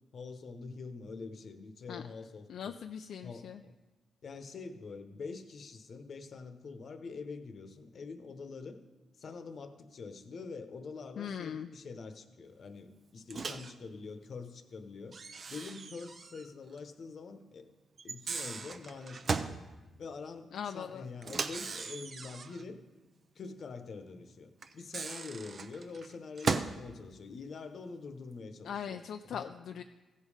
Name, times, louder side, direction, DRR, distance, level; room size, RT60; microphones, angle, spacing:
voice 1, 0.1-2.8 3.2-3.7 4.2-8.8 9.2-15.2 15.5-17.7 18.0-19.6 20.0-22.8 23.3-29.5, left 4 dB, 55° left, 8 dB, 0.9 m, -45 dB
voice 2, 2.5-3.6 11.2-11.7 20.5-21.1 28.6-29.8, left 8 dB, 75° left, 7 dB, 0.3 m, -40 dB
Microwave oven, 13.3-13.8 15.1-16.5 16.8-16.9 18.0-19.6 21.2-22.6 24.6-26.8, right 4 dB, 50° right, 0.6 m, -37 dB
15.5 x 5.5 x 4.9 m, 1.1 s
cardioid pair, 85°, 0 cm